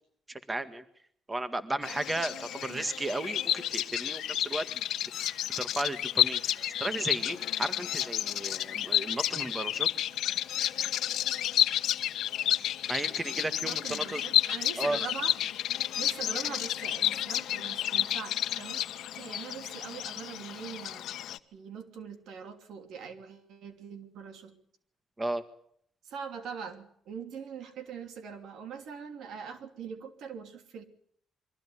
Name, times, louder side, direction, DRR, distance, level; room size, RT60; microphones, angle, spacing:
voice 1, 0.3-0.8 1.3-4.8 5.1-9.9 12.9-14.2 14.8-15.0 25.2-25.4, right 2 dB, 20° right, 11 dB, 1.9 m, -34 dB
Bird vocalization bird call bird song, 1.8-21.4, left 12 dB, 80° left, 1.1 m, -31 dB
voice 2, 13.6-15.3 16.0-18.8 19.1-21.1 21.5-24.6 26.0-30.8, right 6 dB, 75° right, 8 dB, 2.9 m, -42 dB
23.5 x 15.0 x 9.9 m, 0.66 s
cardioid pair, 90°, 0 cm